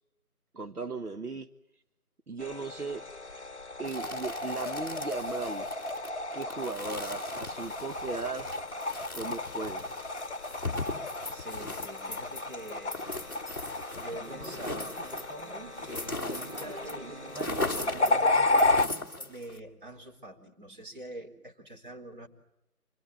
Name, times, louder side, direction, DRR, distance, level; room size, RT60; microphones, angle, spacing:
voice 1, 0.5-1.5 2.3-3.1 3.8-5.7 6.3-8.5 9.1-9.9, right 3 dB, 75° right, 8 dB, 1.5 m, -37 dB
sound 1, 2.4-18.9, left 2 dB, 50° left, 0.9 m, -33 dB
sound 2, 3.8-17.0 17.2-19.6, left 2 dB, 15° left, 1.2 m, -39 dB
voice 2, 11.3-15.2 15.8-18.7 19.3-22.3, right 1 dB, 35° right, 0 dB, 3.8 m, -45 dB
Conversation / Chatter, 14.0-19.3, right 2 dB, 50° right, 3.3 m, -46 dB
27.0 x 21.5 x 7.9 m, 0.88 s
figure-of-eight pair, 160°, 45 cm